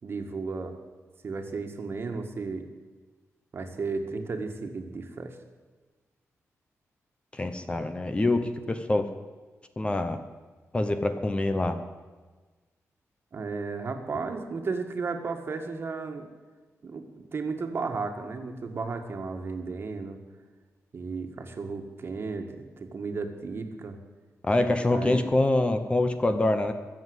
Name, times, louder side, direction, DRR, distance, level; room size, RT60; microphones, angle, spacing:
voice 1, 0.0-0.8 1.2-2.7 3.5-5.4 13.3-16.3 16.8-20.2 20.9-24.0 24.9-25.2, right 4 dB, 45° right, 5 dB, 1.7 m, -34 dB
voice 2, 7.3-9.1 9.8-10.2 10.7-11.8 24.4-26.7, left 2 dB, 20° left, 8 dB, 0.9 m, -25 dB
22.0 x 7.5 x 8.0 m, 1.3 s
wide cardioid pair, 130°, 6 cm